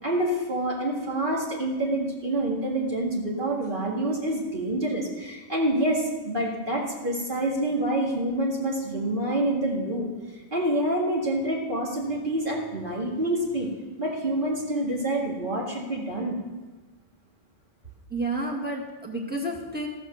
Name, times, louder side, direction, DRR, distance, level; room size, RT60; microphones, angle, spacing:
voice 1, 0.0-10.1 10.5-13.7 14.0-16.4, right 1 dB, 50° right, -2 dB, 2.1 m, -27 dB
voice 2, 18.1-19.9, right 2 dB, 10° right, 0 dB, 1.8 m, -30 dB
13.5 x 8.0 x 6.5 m, 1.3 s
omnidirectional pair, 1.1 m